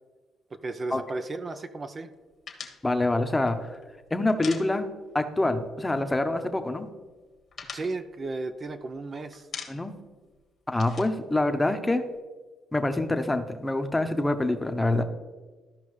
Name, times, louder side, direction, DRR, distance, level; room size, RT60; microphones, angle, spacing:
voice 1, 0.5-2.1 7.7-9.5, right 3 dB, 40° right, 8 dB, 0.5 m, -34 dB
sound 1, 2.5-5.2 5.5-5.7 6.0-6.7 7.0-9.0 9.3-10.1 10.3-12.2, left 6 dB, 55° left, 1.3 m, -43 dB
voice 2, 2.8-3.6 4.1-4.9 5.1-6.9 9.7-9.9 10.7-12.0 12.7-15.0, left 2 dB, 15° left, 7 dB, 0.9 m, -26 dB
13.5 x 5.3 x 3.2 m, 1.3 s
supercardioid pair, 70°, 0 cm